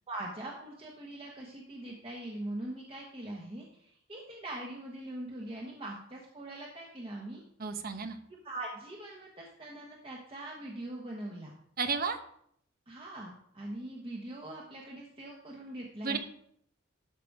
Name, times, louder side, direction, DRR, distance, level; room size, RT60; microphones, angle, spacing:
voice 1, 0.1-7.4 8.4-11.5 12.9-16.2, right 1 dB, 30° right, -2 dB, 1.3 m, -42 dB
voice 2, 7.6-8.2 11.8-12.2 16.0-16.2, right 5 dB, 50° right, 8 dB, 0.9 m, -32 dB
12.5 x 5.1 x 4.8 m, 0.68 s
head